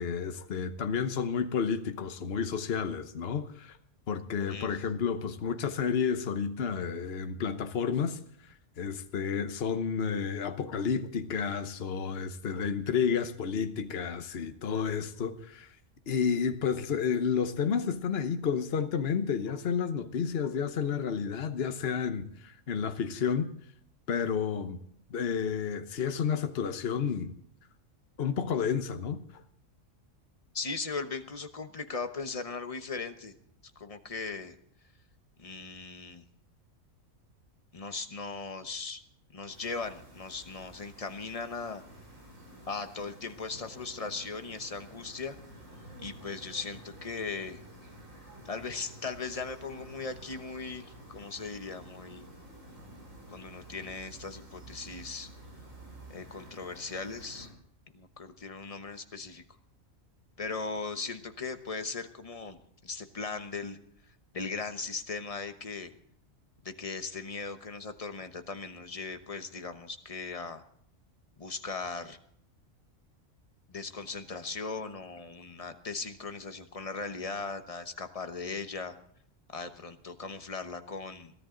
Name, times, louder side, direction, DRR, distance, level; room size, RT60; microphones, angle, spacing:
voice 1, 0.0-3.8 4.1-8.2 8.8-15.7 16.1-23.5 24.1-24.8 25.1-27.3 28.2-29.2, left 6 dB, 55° left, 1.2 m, -31 dB
voice 2, 4.5-4.8 30.5-33.3 33.8-34.5 35.4-36.2 37.7-39.0 39.3-41.8 42.7-45.4 46.0-47.6 48.4-52.3 53.3-55.3 56.1-57.5 57.9-59.4 60.4-63.8 64.3-65.9 66.6-70.6 71.4-72.2 73.7-79.0 79.5-81.3, left 4 dB, 30° left, 1.0 m, -38 dB
sound 1, 39.5-57.5, right 1 dB, 80° right, 6.5 m, -51 dB
22.5 x 13.5 x 3.9 m
omnidirectional pair, 1.3 m